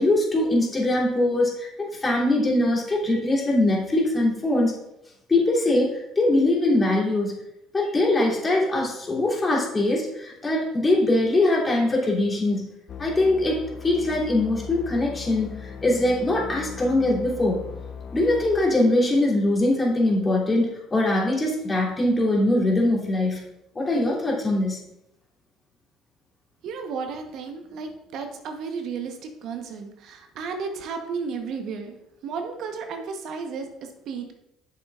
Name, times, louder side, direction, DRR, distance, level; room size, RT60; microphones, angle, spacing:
voice 1, 0.0-4.7 5.3-7.4 7.7-12.7 13.0-17.6 18.1-23.5 23.7-24.8, left 1 dB, 25° left, -3 dB, 2.8 m, -22 dB
sound 1, 12.9-20.4, left 6 dB, 50° left, 0.6 m, -39 dB
voice 2, 26.6-34.3, right 5 dB, 60° right, 5 dB, 0.9 m, -33 dB
8.5 x 6.7 x 2.4 m, 0.85 s
hypercardioid pair, 65°, 0 cm